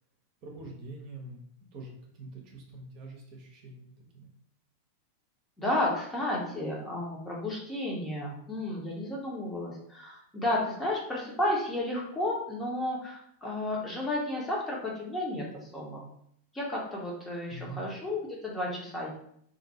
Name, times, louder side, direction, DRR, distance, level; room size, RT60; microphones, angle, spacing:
voice 1, 0.4-1.4 1.7-4.3 17.5-17.9, right 2 dB, 40° right, 0 dB, 0.8 m, -44 dB
voice 2, 5.6-16.1 16.5-19.1, left 1 dB, 10° left, -4 dB, 1.0 m, -32 dB
2.7 x 2.5 x 4.1 m, 0.68 s
figure-of-eight pair, 90°, 0 cm